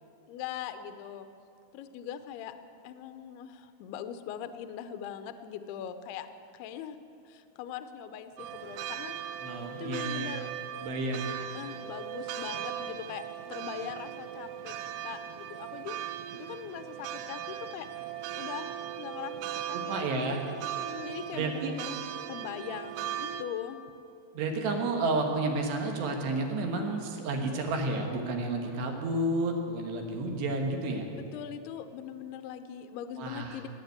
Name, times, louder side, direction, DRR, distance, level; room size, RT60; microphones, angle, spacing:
voice 1, 0.3-1.3 1.7-2.5 2.8-6.3 6.5-7.0 7.3-9.2 9.5-10.5 11.5-14.8 15.0-16.0 16.3-17.9 18.3-20.4 20.8-22.0 22.3-23.8 31.1-33.7, left 9 dB, 80° left, 10 dB, 2.3 m, -41 dB
sound 1, 8.4-23.4, right 10 dB, 85° right, 2.4 m, -38 dB
voice 2, 9.4-10.3 10.8-11.3 19.7-20.4 21.3-21.7 24.3-31.1 33.2-33.6, right 2 dB, 70° right, 2 dB, 3.4 m, -31 dB
19.0 x 8.1 x 9.3 m, 2.6 s
omnidirectional pair, 5.5 m